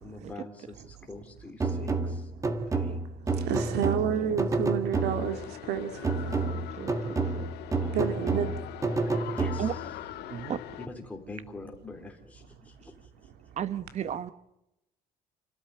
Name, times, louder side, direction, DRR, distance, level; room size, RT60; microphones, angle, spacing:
voice 1, 0.0-2.3 2.7-3.0 7.8-8.2 9.3-9.8 10.8-13.1, left 2 dB, 10° left, 3.5 m, -45 dB
sound 1, 1.6-5.5 6.0-9.9, right 3 dB, 20° right, 1.6 m, -30 dB
voice 2, 3.3-6.5 7.9-8.5, right 8 dB, 85° right, 2.1 m, -30 dB
voice 3, 3.9-4.5 6.4-7.5 8.3-8.5 9.6-9.7 10.3-10.6 13.6-14.3, right 9 dB, 45° right, 1.1 m, -35 dB
sound 2, 4.9-10.9, left 12 dB, 85° left, 1.6 m, -42 dB
28.5 x 13.0 x 8.9 m
cardioid pair, 155°, 17 cm